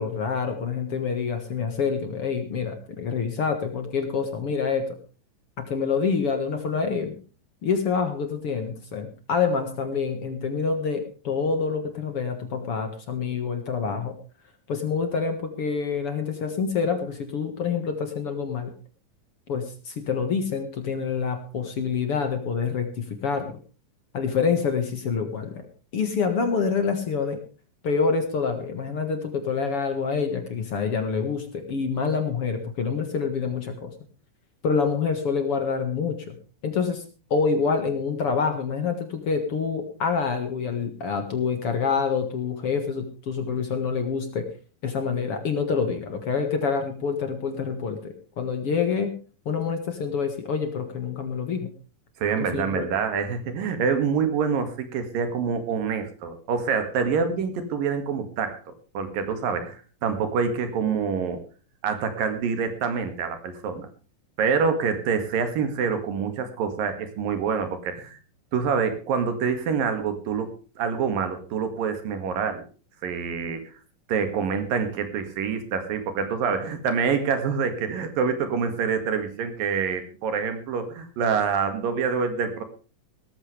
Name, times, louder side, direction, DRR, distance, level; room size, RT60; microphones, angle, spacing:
voice 1, 0.0-5.0 5.6-7.2 7.6-14.2 14.7-18.7 19.5-23.6 24.1-25.7 25.9-27.4 27.8-33.9 34.6-36.4 36.6-37.0 37.3-44.5 44.8-49.1 49.5-51.7 52.4-52.9, left 5 dB, 50° left, 6 dB, 2.2 m, -27 dB
voice 2, 52.2-58.6 59.0-61.4 61.8-63.9 64.4-68.2 68.5-72.6 73.0-73.7 74.1-82.6, right 6 dB, 80° right, 8 dB, 3.7 m, -26 dB
18.0 x 14.0 x 3.3 m, 0.36 s
omnidirectional pair, 4.0 m